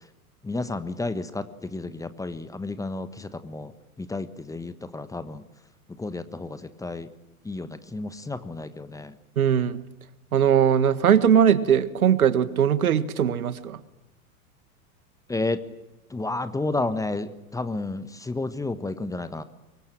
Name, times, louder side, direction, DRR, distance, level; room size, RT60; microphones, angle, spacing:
voice 1, 0.4-3.7 4.0-5.4 6.0-7.1 7.4-9.1 15.3-15.6 16.1-19.4, left 2 dB, 5° left, 12 dB, 1.3 m, -31 dB
voice 2, 9.4-9.8 10.3-13.8, right 8 dB, 70° right, 15 dB, 1.7 m, -20 dB
24.0 x 23.5 x 9.1 m, 0.98 s
figure-of-eight pair, 90°, 44 cm